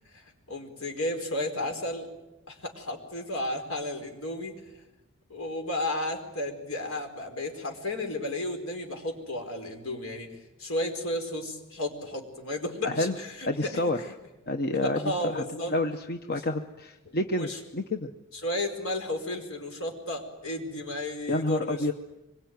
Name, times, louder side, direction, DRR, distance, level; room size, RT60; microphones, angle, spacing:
voice 1, 0.1-2.1 2.5-4.6 5.3-13.8 14.8-15.7 17.1-17.6 18.3-21.9, left 1 dB, 80° left, 3 dB, 4.7 m, -33 dB
voice 2, 12.8-13.1 13.5-14.0 14.5-18.1 21.3-21.9, left 2 dB, 50° left, 6 dB, 1.1 m, -29 dB
25.0 x 22.5 x 9.5 m, 0.99 s
head